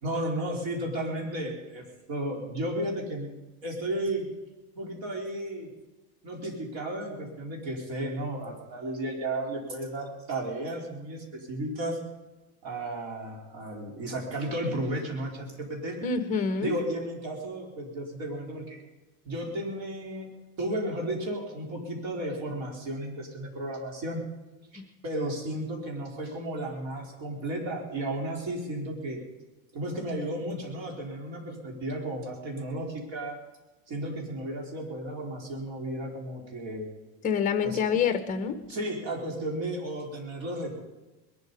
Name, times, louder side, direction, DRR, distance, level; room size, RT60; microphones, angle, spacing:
voice 1, 0.0-3.3 3.6-4.3 4.7-5.7 6.2-12.0 12.6-16.0 16.6-18.8 19.2-20.3 20.6-24.2 24.7-29.2 29.7-33.4 33.9-36.9 37.6-37.8 38.7-40.8, right 1 dB, 55° right, -1 dB, 4.1 m, -33 dB
voice 2, 16.0-16.7 24.7-24.8 37.2-38.6, left 6 dB, 20° left, 9 dB, 1.0 m, -27 dB
21.0 x 12.0 x 5.3 m, 1.1 s
cardioid pair, 165°, 41 cm